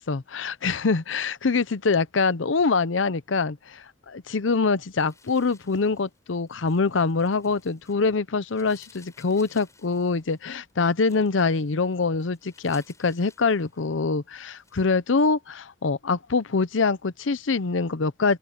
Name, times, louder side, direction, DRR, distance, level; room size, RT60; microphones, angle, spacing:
voice 1, 0.0-18.4, left 4 dB, 85° left, 0.7 m, -24 dB
sound 1, 5.0-8.1 8.4-14.1 14.5-14.9, left 3 dB, 15° left, 6.9 m, -57 dB
head